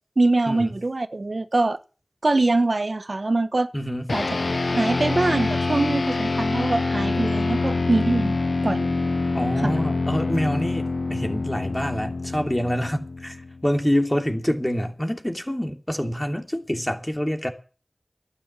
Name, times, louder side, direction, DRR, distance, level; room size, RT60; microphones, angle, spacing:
voice 1, 0.2-1.8 2.2-3.7 4.1-4.3 4.8-8.3 8.6-8.9 9.6-9.8, right 2 dB, 65° right, 0.9 m, -23 dB
voice 2, 3.7-4.1 9.3-17.5, equal, 15° left, 2.8 m, -26 dB
sound 1, 4.1-13.7, left 3 dB, 80° left, 0.6 m, -25 dB
12.0 x 10.0 x 8.7 m
wide cardioid pair, 40°, 0 cm